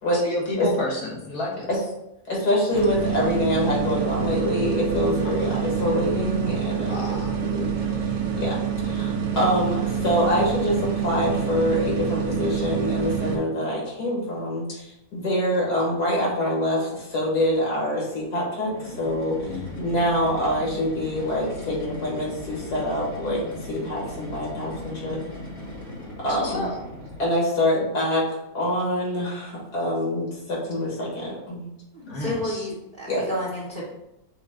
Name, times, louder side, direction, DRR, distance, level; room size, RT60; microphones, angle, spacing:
voice 1, 0.2-1.7 5.2-5.5 6.9-7.3 19.4-19.6 26.3-26.8 32.1-32.7, left 2 dB, 65° left, -3 dB, 1.6 m, -31 dB
voice 2, 2.3-7.7 8.3-14.8 15.1-19.4 19.7-23.4 23.7-25.2 26.2-26.7 27.2-28.2 28.5-31.7 33.1-33.2, left 1 dB, 90° left, -5 dB, 2.3 m, -25 dB
sound 1, 2.7-13.4, right 7 dB, 60° right, 1.0 m, -27 dB
sound 2, 18.6-27.4, left 1 dB, 25° left, 1.1 m, -38 dB
voice 3, 31.9-33.9, left 1 dB, 40° right, -6 dB, 0.9 m, -31 dB
6.0 x 2.3 x 3.6 m, 0.88 s
omnidirectional pair, 1.7 m